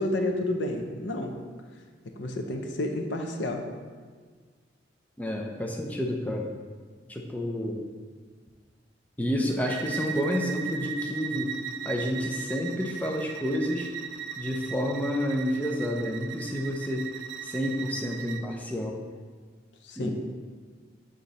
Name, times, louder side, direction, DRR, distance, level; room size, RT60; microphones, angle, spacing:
voice 1, 0.0-1.3 2.2-3.6 19.8-20.1, left 1 dB, 80° left, 4 dB, 0.6 m, -30 dB
voice 2, 5.2-6.5 7.1-7.9 9.2-11.5 11.8-13.9 14.4-17.1 17.4-19.0 20.0-20.1, equal, 10° left, 0 dB, 0.5 m, -29 dB
Bowed string instrument, 9.7-18.5, right 8 dB, 80° right, 0.4 m, -38 dB
7.2 x 3.8 x 4.0 m, 1.5 s
head